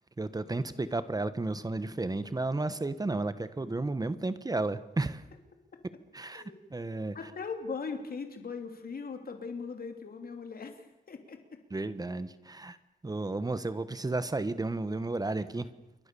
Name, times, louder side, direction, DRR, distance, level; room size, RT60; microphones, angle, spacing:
voice 1, 0.2-5.2 6.1-6.4 6.7-7.3 11.7-12.8 13.0-15.7, right 2 dB, 25° right, 13 dB, 1.3 m, -33 dB
voice 2, 7.1-11.6, left 5 dB, 70° left, 6 dB, 3.1 m, -40 dB
28.5 x 23.5 x 7.0 m, 0.98 s
wide cardioid pair, 145°, 16 cm